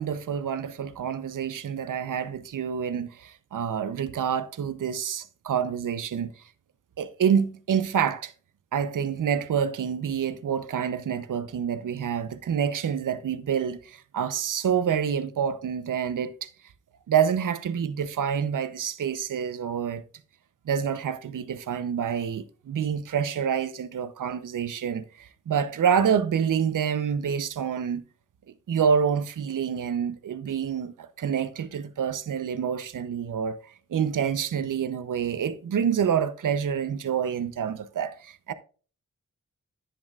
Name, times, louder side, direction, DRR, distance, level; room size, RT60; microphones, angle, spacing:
voice 1, 0.0-6.3 7.0-8.3 8.7-16.5 17.1-20.0 20.7-28.0 28.7-33.6 33.9-38.5, right 7 dB, 75° right, 0.8 m, -27 dB
10.5 x 8.6 x 2.4 m
cardioid pair, 65°, 31 cm